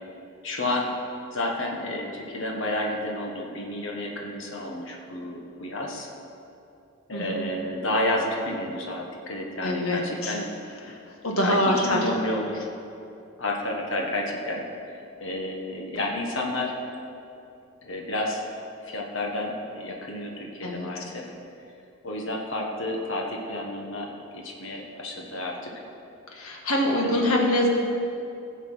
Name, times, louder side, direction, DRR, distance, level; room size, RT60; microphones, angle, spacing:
voice 1, 0.4-0.9 1.3-6.1 7.1-10.5 11.3-12.7 13.4-14.6 15.2-16.7 17.8-18.4 18.8-21.3 22.0-25.6 26.9-27.2, left 1 dB, 60° left, 0 dB, 1.5 m, -30 dB
voice 2, 7.1-7.5 9.6-10.4 10.9-11.0 11.2-12.0 20.6-20.9 26.3-27.7, left 1 dB, 75° left, 0 dB, 1.8 m, -24 dB
15.5 x 7.3 x 5.7 m, 2.7 s
head